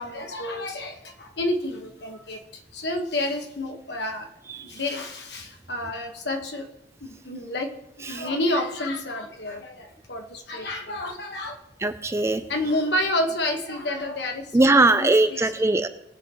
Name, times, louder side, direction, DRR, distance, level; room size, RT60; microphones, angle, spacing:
voice 1, 0.0-4.3 4.6-6.7 7.0-7.8 8.0-11.6 12.5-15.5, left 1 dB, 60° left, 4 dB, 1.3 m, -29 dB
voice 2, 11.8-12.5 14.5-15.9, right 2 dB, 15° right, 10 dB, 0.4 m, -20 dB
20.0 x 7.8 x 3.0 m, 0.89 s
head